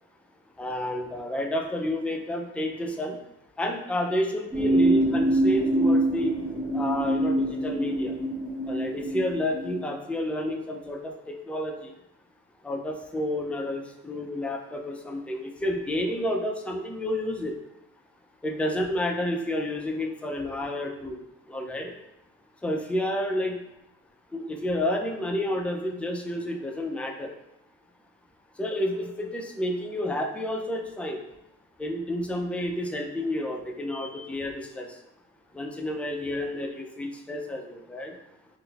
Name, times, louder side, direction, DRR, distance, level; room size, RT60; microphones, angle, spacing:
voice 1, 0.6-3.2 3.6-6.3 6.7-8.1 8.7-11.7 12.6-17.5 18.4-21.2 21.5-21.9 22.6-23.6 24.3-27.3 28.6-31.2 31.8-34.9 35.5-38.1, left 1 dB, 5° left, 2 dB, 0.3 m, -30 dB
sound 1, 4.5-9.8, right 1 dB, 15° right, 1.3 m, -25 dB
3.7 x 2.5 x 2.3 m, 0.85 s
cardioid pair, 90°, 30 cm